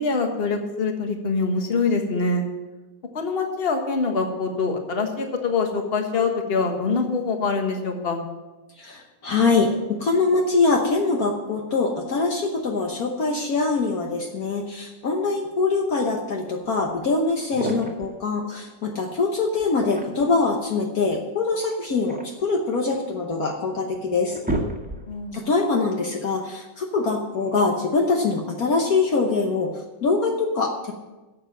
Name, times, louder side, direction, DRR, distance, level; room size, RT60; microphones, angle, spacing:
voice 1, 0.0-2.4 3.1-8.2 25.1-25.4, left 4 dB, 35° left, 4 dB, 1.5 m, -24 dB
voice 2, 8.8-24.4 25.3-29.7 30.0-30.9, left 3 dB, 60° left, 1 dB, 1.4 m, -23 dB
sound 1, 17.0-17.1 17.4-18.1 19.6-20.4 21.7-23.1 23.7-23.8 24.1-25.3, right 2 dB, 5° right, 1.6 m, -31 dB
11.0 x 7.2 x 7.5 m, 1.1 s
omnidirectional pair, 1.9 m